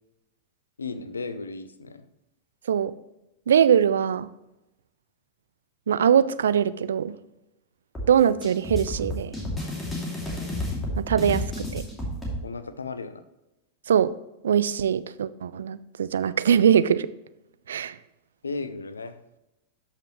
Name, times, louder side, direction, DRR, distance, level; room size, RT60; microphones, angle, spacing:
voice 1, 0.8-2.0 12.4-13.2 18.4-19.2, left 4 dB, 75° left, 12 dB, 0.7 m, -35 dB
voice 2, 3.5-4.3 5.9-7.1 8.1-9.3 11.0-11.8 13.9-14.1 14.4-17.1 17.7-18.0, right 8 dB, 65° right, 16 dB, 0.4 m, -22 dB
sound 1, 8.0-12.4, left 1 dB, 15° left, 2.7 m, -31 dB
13.0 x 5.8 x 3.1 m, 0.93 s
figure-of-eight pair, 90°, 0 cm